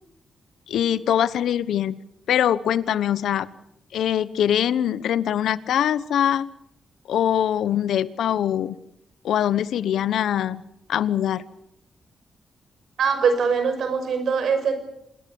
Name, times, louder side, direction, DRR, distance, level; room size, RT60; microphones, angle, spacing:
voice 1, 0.7-1.9 2.3-3.5 3.9-6.5 7.1-8.8 9.2-10.6 10.9-11.4, left 10 dB, 90° left, 17 dB, 1.0 m, -23 dB
voice 2, 13.0-14.8, right 5 dB, 75° right, 9 dB, 5.8 m, -22 dB
26.0 x 21.0 x 7.1 m, 0.80 s
cardioid pair, 95°, 0 cm